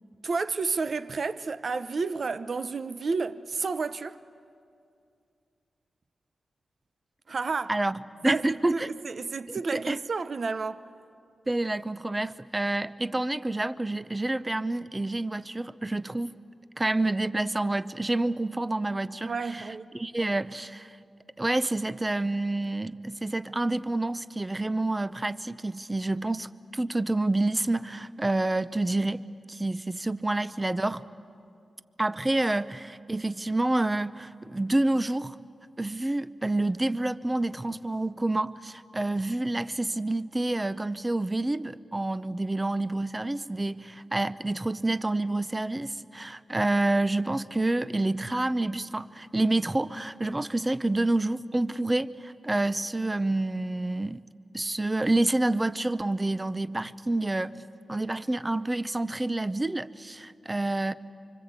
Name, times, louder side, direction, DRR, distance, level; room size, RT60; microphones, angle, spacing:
voice 1, 0.2-4.2 7.3-7.7 8.2-10.8 19.2-19.9, right 4 dB, 60° right, 0.8 m, -31 dB
voice 2, 7.7-8.9 9.5-10.0 11.5-16.3 16.8-19.7 19.9-21.0 21.4-31.0 32.0-35.3 35.8-54.2 54.5-57.6 57.9-60.9, right 2 dB, 25° right, 0.7 m, -28 dB
25.0 x 25.0 x 8.2 m
cardioid pair, 55°, 0 cm